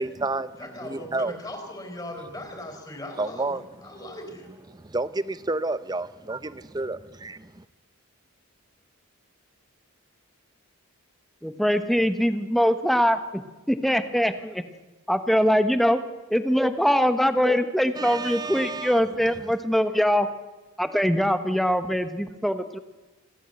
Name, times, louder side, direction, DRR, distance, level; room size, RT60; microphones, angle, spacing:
voice 1, 0.0-1.4 3.2-3.7 4.7-7.6 18.0-19.0, right 2 dB, 20° right, 15 dB, 0.6 m, -30 dB
voice 2, 0.6-4.5, left 1 dB, 20° left, 4 dB, 4.0 m, -39 dB
voice 3, 11.4-13.4 13.7-14.6 15.1-16.0 16.3-20.3 20.8-22.8, equal, ahead, 10 dB, 1.0 m, -22 dB
27.5 x 13.0 x 7.8 m, 1.2 s
head